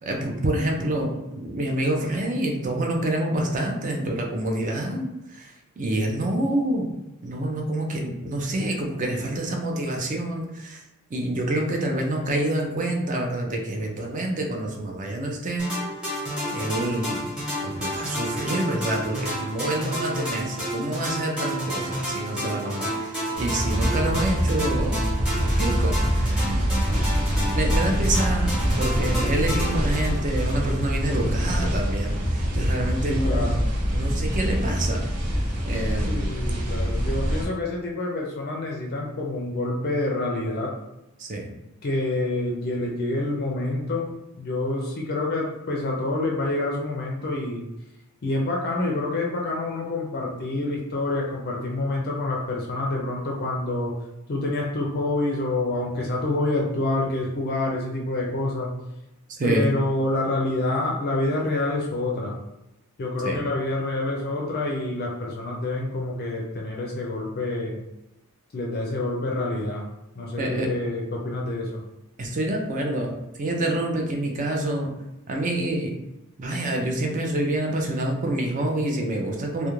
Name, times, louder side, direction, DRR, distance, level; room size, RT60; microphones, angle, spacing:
voice 1, 0.0-6.9 7.2-10.8 11.1-15.7 16.5-17.4 17.6-25.0 25.4-26.6 27.5-33.5 33.9-35.0 35.7-36.2 41.2-41.5 59.3-59.7 63.2-63.4 70.4-70.7 72.2-74.9 75.3-75.9 76.4-79.7, right 1 dB, 35° right, 1 dB, 0.4 m, -27 dB
sound 1, 15.6-31.0, equal, 5° right, 1.0 m, -31 dB
sound 2, 23.3-37.5, equal, 85° right, 0.7 m, -25 dB
voice 2, 26.8-27.6 33.0-33.6 36.0-40.8 41.8-44.1 44.4-47.7 48.2-53.9 54.3-58.7 59.4-62.4 63.0-67.8 68.5-69.8 70.2-71.8, left 2 dB, 45° left, -2 dB, 0.4 m, -27 dB
2.3 x 2.1 x 3.0 m, 0.91 s
head